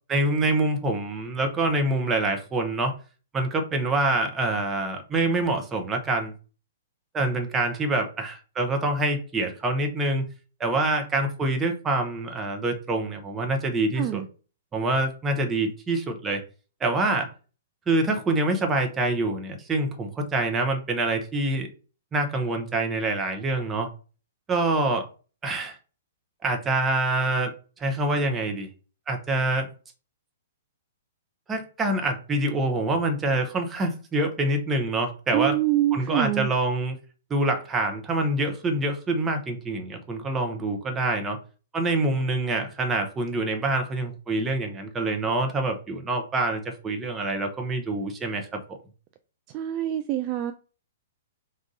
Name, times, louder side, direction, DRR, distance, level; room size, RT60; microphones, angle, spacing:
voice 1, 0.1-2.9 3.3-6.3 7.1-10.2 10.6-14.2 14.7-16.4 16.8-17.3 17.9-21.7 22.1-23.9 24.5-25.1 25.4-25.8 26.4-27.5 27.8-28.7 29.1-29.7 31.5-35.6 35.9-37.0 37.3-41.4 41.7-48.8, right 2 dB, 15° right, 0.8 m, -26 dB
voice 2, 14.0-14.3 35.3-36.5 49.5-50.5, right 14 dB, 35° right, 0.3 m, -25 dB
3.6 x 2.6 x 3.9 m
figure-of-eight pair, 110°, 0 cm